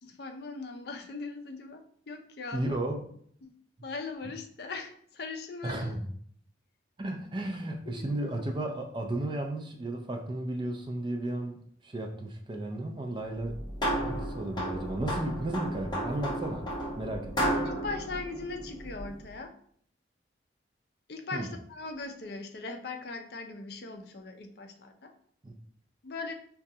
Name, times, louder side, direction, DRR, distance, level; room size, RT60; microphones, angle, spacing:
voice 1, 0.0-2.8 3.4-3.5 3.8-5.9 7.9-8.3 17.3-19.5 21.1-25.1 26.0-26.3, left 3 dB, 55° left, 5 dB, 0.5 m, -40 dB
voice 2, 2.5-3.1 5.6-6.1 7.0-11.6 11.8-13.6 14.0-16.7 17.0-17.5 21.3-21.5 25.4-25.6, right 1 dB, 25° right, 3 dB, 0.4 m, -34 dB
sound 1, 13.4-19.2, right 1 dB, 20° left, 0.8 m, -33 dB
4.9 x 2.3 x 2.7 m, 0.62 s
head